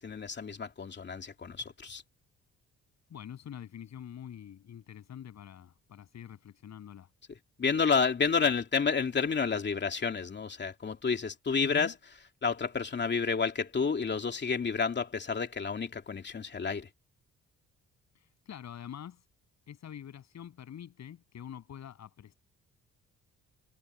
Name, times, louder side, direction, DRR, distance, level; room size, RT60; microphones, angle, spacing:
voice 1, 0.0-2.0 7.6-11.9 12.4-16.9, left 5 dB, 35° left, 2.7 m, -30 dB
voice 2, 3.1-7.1 11.6-11.9 18.5-19.2 19.7-22.3, left 9 dB, 65° left, 7.7 m, -45 dB
cardioid pair, 90°, 30 cm